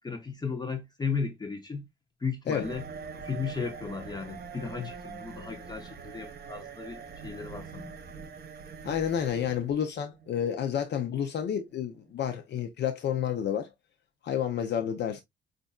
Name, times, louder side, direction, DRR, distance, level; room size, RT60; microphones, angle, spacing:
voice 1, 0.0-1.9 2.2-2.9 3.1-8.0, left 5 dB, 20° left, 0.8 m, -35 dB
sound 1, 2.6-12.2, right 5 dB, 55° right, 0.9 m, -44 dB
voice 2, 8.8-13.7 14.2-15.2, left 8 dB, 60° left, 0.6 m, -30 dB
5.2 x 2.5 x 2.3 m
cardioid pair, 90°, 20 cm